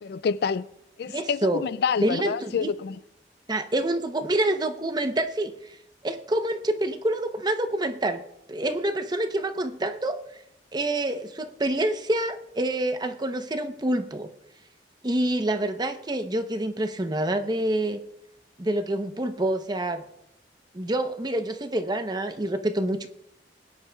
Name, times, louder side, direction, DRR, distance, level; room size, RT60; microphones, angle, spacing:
voice 1, 0.0-0.6 1.0-3.0, left 6 dB, 60° left, 0.3 m, -27 dB
voice 2, 1.1-1.6 2.0-2.7 3.5-5.7 6.0-8.2 8.5-10.2 10.7-14.3 15.0-18.0 18.6-20.0 20.7-23.1, right 1 dB, 25° right, 0.8 m, -27 dB
22.0 x 10.0 x 2.3 m
head